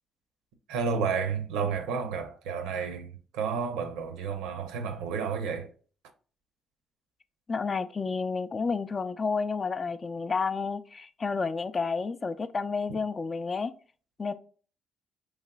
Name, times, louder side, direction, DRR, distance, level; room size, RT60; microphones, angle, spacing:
voice 1, 0.7-5.7, right 6 dB, 80° right, 0.5 m, -31 dB
voice 2, 7.5-13.7 14.2-14.3, left 4 dB, 40° left, 0.3 m, -30 dB
4.7 x 3.2 x 2.2 m
hypercardioid pair, 50°, 0 cm